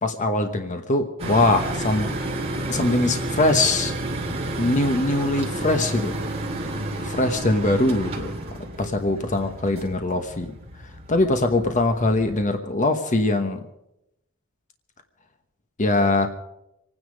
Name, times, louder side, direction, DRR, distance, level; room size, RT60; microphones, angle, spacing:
voice 1, 0.0-2.1 2.7-3.9 4.6-6.2 7.0-8.3 8.8-10.5 11.1-13.6 15.8-16.3, left 2 dB, 35° left, 6 dB, 1.1 m, -22 dB
sound 1, 1.2-12.4, right 1 dB, 30° right, 2.5 m, -31 dB
26.0 x 9.7 x 5.2 m, 0.84 s
head